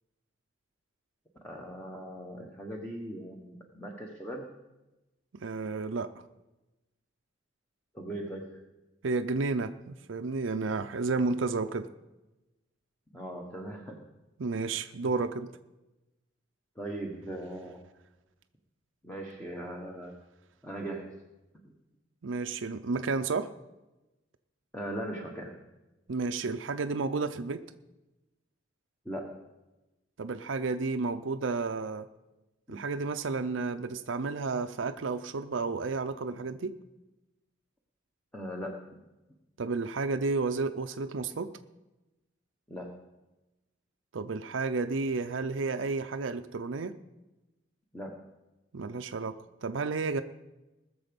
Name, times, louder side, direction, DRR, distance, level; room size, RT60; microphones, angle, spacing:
voice 1, 1.4-4.4 7.9-8.6 13.1-14.0 16.8-17.8 19.0-20.1 20.6-21.2 21.5-21.7 24.7-25.6 29.0-29.4 32.7-32.8 38.3-39.0 42.7-42.9 47.9-48.3, right 1 dB, 10° left, 0 dB, 1.2 m, -39 dB
voice 2, 5.3-6.1 9.0-11.9 14.4-15.5 22.2-23.5 26.1-27.6 30.2-32.1 32.7-36.8 39.6-41.6 44.1-47.0 48.7-50.2, right 3 dB, 90° right, 8 dB, 0.6 m, -31 dB
20.0 x 7.0 x 5.3 m, 1.0 s
head